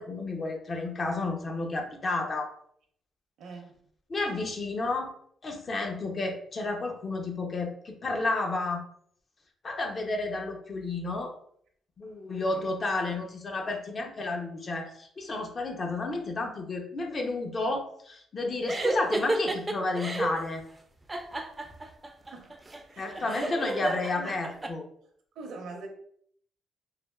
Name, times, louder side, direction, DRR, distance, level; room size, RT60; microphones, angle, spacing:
voice 1, 0.0-2.5 4.1-5.1 5.4-8.9 9.6-11.3 12.0-20.6 23.0-24.8, left 2 dB, 40° left, 3 dB, 0.6 m, -31 dB
voice 2, 3.4-3.8 22.2-22.6 22.8-24.3 25.3-25.9, right 3 dB, 80° right, 2 dB, 0.6 m, -43 dB
sound 1, 18.7-20.4 21.1-24.7, right 2 dB, 20° right, 0.4 m, -31 dB
3.3 x 2.3 x 2.2 m, 0.64 s
cardioid pair, 90°, 0 cm